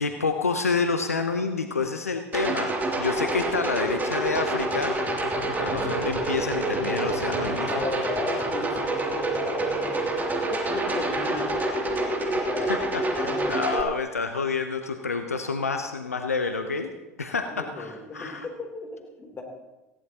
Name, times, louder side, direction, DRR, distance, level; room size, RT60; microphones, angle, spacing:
voice 1, 0.0-2.7 3.0-5.0 5.6-7.8 12.6-16.9 17.2-18.5, left 4 dB, 90° left, 7 dB, 0.8 m, -28 dB
sound 1, 2.3-13.8, right 1 dB, 25° right, 2.9 m, -27 dB
voice 2, 7.7-10.1 10.5-12.7 13.1-13.6 17.6-19.4, left 2 dB, 25° left, 2 dB, 3.5 m, -35 dB
18.5 x 17.0 x 3.0 m, 1.1 s
figure-of-eight pair, 75°, 8 cm